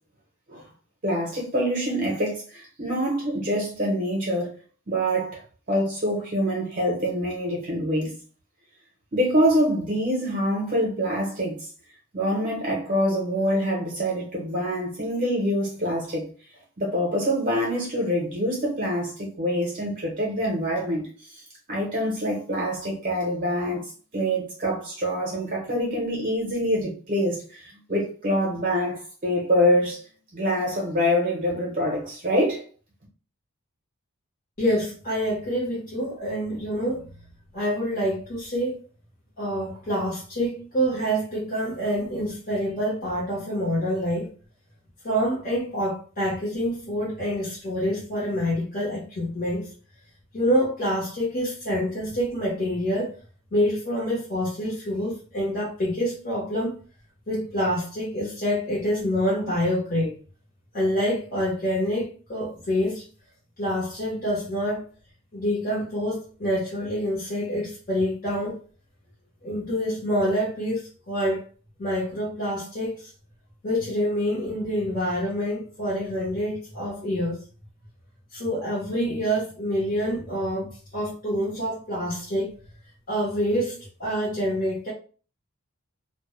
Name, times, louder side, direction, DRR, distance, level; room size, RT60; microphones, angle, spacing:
voice 1, 1.0-4.6 4.9-5.4 5.7-8.1 9.1-11.7 12.1-16.2 16.8-21.4 21.7-32.6, equal, 35° right, 0.6 m, -25 dB
voice 2, 34.6-37.1 37.5-38.8 39.4-44.3 45.0-49.7 50.3-53.1 53.5-56.8 57.3-60.1 60.7-63.0 63.6-64.8 65.3-68.6 69.4-71.4 71.8-73.1 73.6-77.4 78.3-82.5 83.1-84.9, equal, 40° left, 0.8 m, -27 dB
2.1 x 2.1 x 3.0 m
head